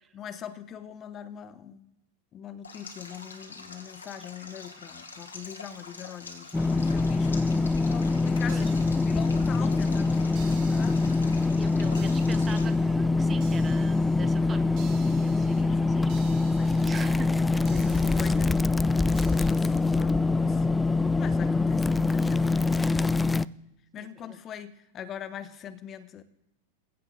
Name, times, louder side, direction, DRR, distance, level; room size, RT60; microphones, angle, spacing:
voice 1, 0.1-1.9 2.3-11.1 15.6-16.0 16.6-17.0 17.4-18.6 18.9-20.6 21.1-23.3 23.9-26.2, left 9 dB, 30° left, 13 dB, 1.0 m, -42 dB
Stream, 2.6-12.7, left 4 dB, 75° left, 2.2 m, -46 dB
sound 1, 6.5-23.5, left 3 dB, 10° left, 0.3 m, -24 dB
sound 2, 8.5-9.8 10.3-11.5 11.9-12.9 13.4-14.2 14.8-15.6 16.1-17.0 17.7-18.6 19.1-19.9, right 7 dB, 40° right, 2.9 m, -52 dB
voice 2, 11.6-14.7 15.2-17.6 23.9-24.4, right 6 dB, 20° right, 13 dB, 0.7 m, -43 dB
16.0 x 5.7 x 6.9 m, 0.86 s
figure-of-eight pair, 90°, 0 cm